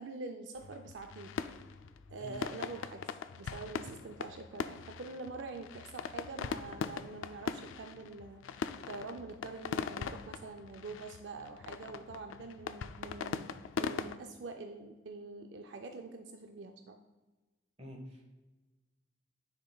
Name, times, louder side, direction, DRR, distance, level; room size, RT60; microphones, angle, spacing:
voice 1, 0.0-1.4 2.1-13.5 13.8-17.0, right 3 dB, 70° right, 5 dB, 0.4 m, -45 dB
sound 1, 0.6-14.2, left 6 dB, 85° left, 0.3 m, -41 dB
voice 2, 17.8-18.2, equal, 30° right, 1 dB, 1.2 m, -47 dB
10.0 x 5.1 x 2.3 m, 1.2 s
head